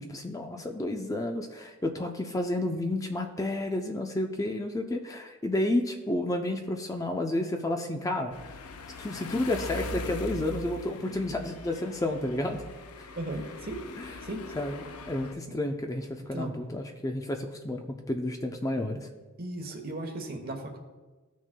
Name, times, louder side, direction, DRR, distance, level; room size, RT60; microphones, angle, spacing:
voice 1, 0.0-8.3 9.0-12.6 14.0-14.2 14.6-19.1, left 1 dB, 15° left, 4 dB, 0.5 m, -31 dB
sound 1, 8.3-15.3, left 3 dB, 85° left, 0.6 m, -41 dB
voice 2, 13.2-13.8 14.2-14.4 16.2-16.5 19.4-20.8, right 2 dB, 45° right, 4 dB, 1.1 m, -36 dB
15.0 x 6.2 x 2.2 m, 1.3 s
head